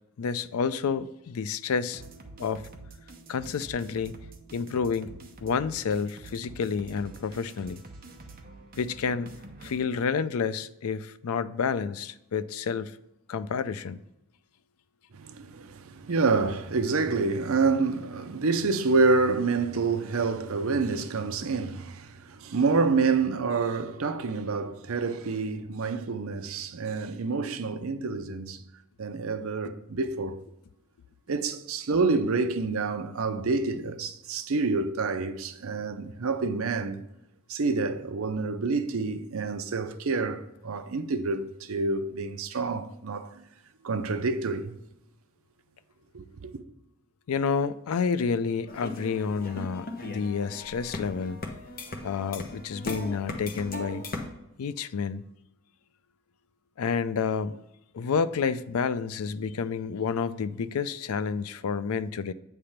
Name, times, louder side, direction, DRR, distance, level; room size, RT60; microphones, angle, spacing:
voice 1, 0.2-2.0 2.4-2.6 3.3-4.1 4.5-7.8 8.8-9.3 9.6-13.0 13.3-14.0 47.3-51.4 52.0-54.1 54.6-55.2 56.8-57.6 57.9-62.3, left 6 dB, 80° left, 0.4 m, -29 dB
sound 1, 1.9-9.9, right 2 dB, 40° right, 0.9 m, -47 dB
voice 2, 15.1-28.6 29.0-30.4 31.3-37.0 37.5-43.5 43.8-44.8 46.1-46.5, right 4 dB, 70° right, 0.6 m, -28 dB
sound 2, 48.7-54.3, left 2 dB, 40° left, 0.9 m, -38 dB
8.6 x 3.4 x 5.7 m
head